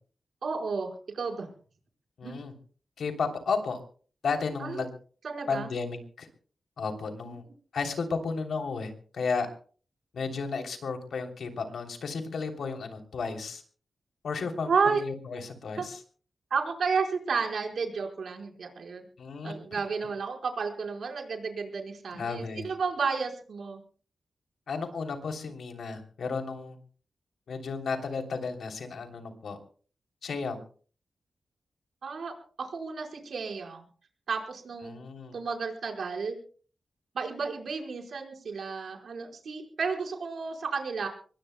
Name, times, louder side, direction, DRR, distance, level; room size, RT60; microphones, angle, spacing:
voice 1, 0.4-1.5 2.2-2.3 4.6-4.8 5.2-5.7 7.2-7.4 14.7-15.0 15.8-15.9 16.5-19.0 19.4-23.8 32.0-33.8 34.3-35.0 35.3-36.4 37.1-41.1, right 5 dB, 75° right, 2 dB, 4.6 m, -32 dB
voice 2, 2.2-2.5 3.0-3.8 4.2-4.9 5.5-6.3 6.8-7.4 7.7-9.5 10.1-13.6 14.2-16.0 19.2-19.8 22.1-22.7 24.7-26.8 27.5-29.6 30.2-30.6 34.8-35.4, left 4 dB, 85° left, 4 dB, 3.1 m, -33 dB
25.5 x 21.5 x 2.2 m, 0.42 s
wide cardioid pair, 115°, 0 cm